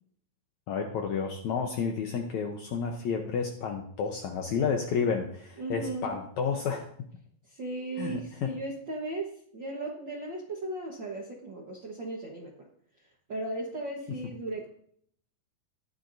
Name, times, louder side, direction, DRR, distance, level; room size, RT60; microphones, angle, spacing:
voice 1, 0.7-6.9 8.0-8.5 14.1-14.2, left 6 dB, 75° left, 3 dB, 1.8 m, -31 dB
voice 2, 5.6-6.1 7.5-12.7 13.3-14.7, right 2 dB, 75° right, -2 dB, 1.0 m, -36 dB
15.0 x 10.0 x 2.6 m, 0.64 s
omnidirectional pair, 4.3 m